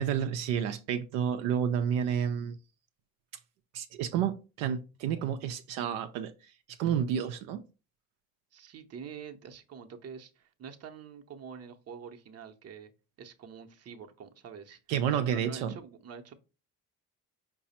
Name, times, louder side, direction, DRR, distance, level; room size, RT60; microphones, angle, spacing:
voice 1, 0.0-2.6 3.7-6.3 6.8-7.6 14.9-15.8, right 8 dB, 75° right, 0.5 m, -30 dB
voice 2, 8.5-12.9 13.2-14.8 15.1-16.3, right 6 dB, 40° right, 0.7 m, -46 dB
4.7 x 2.0 x 4.1 m
hypercardioid pair, 60°, 40 cm